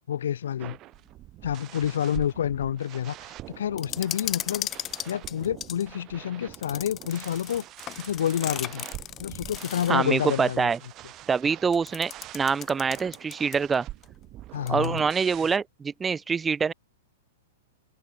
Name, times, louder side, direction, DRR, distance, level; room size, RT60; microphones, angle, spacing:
voice 1, 0.1-0.8 1.4-4.7 5.0-7.6 8.0-8.8 9.2-10.7 14.5-15.0, left 9 dB, 80° left, 1.5 m, -28 dB
sound 1, 0.6-15.6, right 15 dB, 30° right, 3.0 m, -44 dB
sound 2, 3.8-5.8 6.5-10.0 11.7-13.8 14.0-14.1 14.7-15.1, left 12 dB, 25° left, 4.7 m, -36 dB
voice 2, 9.9-10.8 11.3-13.9 14.7-16.7, right 5 dB, 10° right, 0.8 m, -25 dB
open air
hypercardioid pair, 150°, 0 cm